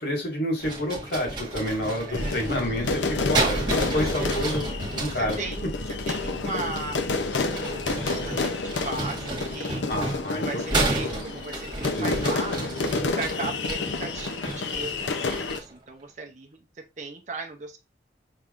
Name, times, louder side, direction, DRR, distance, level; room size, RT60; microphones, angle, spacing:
voice 1, 0.0-3.6 3.9-4.7 4.9-5.4 9.9-11.1 11.9-12.3, left 1 dB, 70° left, 0 dB, 1.8 m, -29 dB
sound 1, 0.6-5.4 7.2-15.8, right 2 dB, 25° right, 1.5 m, -32 dB
sound 2, 2.1-15.6, left 3 dB, 90° left, 0.6 m, -30 dB
sound 3, 2.1-8.9, right 1 dB, 35° left, 0.9 m, -37 dB
voice 2, 2.1-2.4 3.3-3.6 3.9-4.3 5.1-5.7 6.1-7.0 7.4-9.8 10.4-12.6 13.1-17.8, right 3 dB, 40° right, 2 dB, 0.5 m, -37 dB
5.6 x 3.5 x 2.4 m, 0.25 s
head